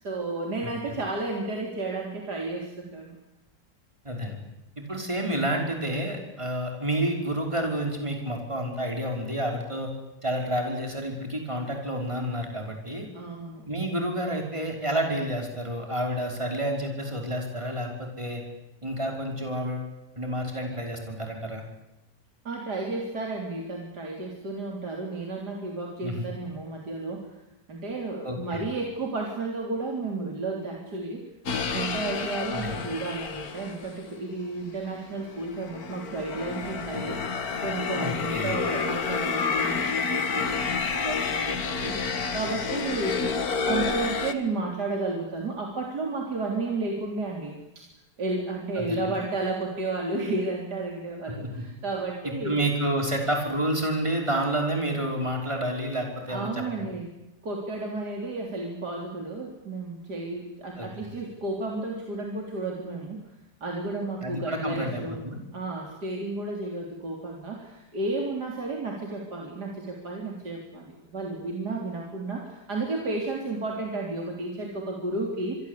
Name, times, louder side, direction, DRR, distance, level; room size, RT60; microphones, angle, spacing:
voice 1, 0.0-3.2 13.1-13.7 22.4-27.3 27.7-31.2 31.7-37.3 37.6-47.9 48.2-52.5 56.3-57.1 57.4-63.2 63.6-75.6, right 2 dB, 70° right, 0 dB, 4.2 m, -32 dB
voice 2, 4.0-4.4 4.8-9.9 10.2-13.1 13.7-18.4 18.8-19.9 20.2-21.6 26.0-26.3 28.2-28.6 32.5-32.8 38.0-38.5 48.8-49.1 52.2-56.9 60.8-61.1 64.2-65.4, right 1 dB, 15° right, 2 dB, 5.5 m, -29 dB
sound 1, 31.5-34.0 34.7-44.3, left 5 dB, 60° left, 2.2 m, -29 dB
27.5 x 22.5 x 8.5 m, 0.94 s
omnidirectional pair, 1.8 m